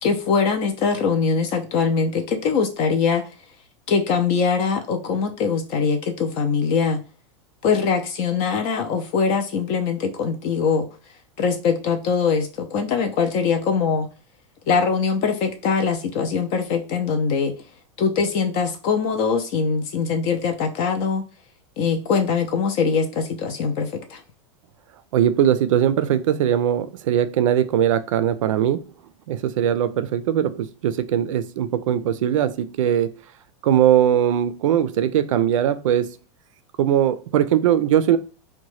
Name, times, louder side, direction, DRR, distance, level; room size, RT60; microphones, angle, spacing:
voice 1, 0.0-3.4 3.9-7.0 7.6-10.9 11.4-14.1 14.7-21.2 21.8-24.2, left 5 dB, 40° left, 6 dB, 0.4 m, -22 dB
voice 2, 25.1-28.9 29.3-33.1 33.6-36.1 36.8-38.2, right 10 dB, 90° right, 12 dB, 0.4 m, -20 dB
2.8 x 2.2 x 3.0 m, 0.34 s
supercardioid pair, 150°, 16 cm